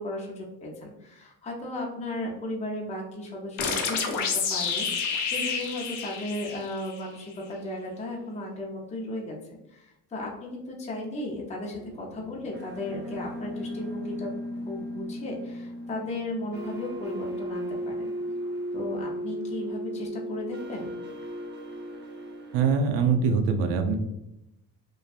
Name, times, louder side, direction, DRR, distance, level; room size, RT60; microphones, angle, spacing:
voice 1, 0.0-9.3 9.7-18.1 18.7-21.0, left 1 dB, 15° left, -2 dB, 0.5 m, -35 dB
sound 1, 3.6-7.1, left 5 dB, 65° left, 0.7 m, -29 dB
sound 2, 11.7-22.7, equal, 25° right, 0.7 m, -36 dB
voice 2, 22.5-23.9, right 5 dB, 75° right, 6 dB, 0.5 m, -23 dB
2.6 x 2.2 x 2.3 m, 0.87 s
supercardioid pair, 75°, 43 cm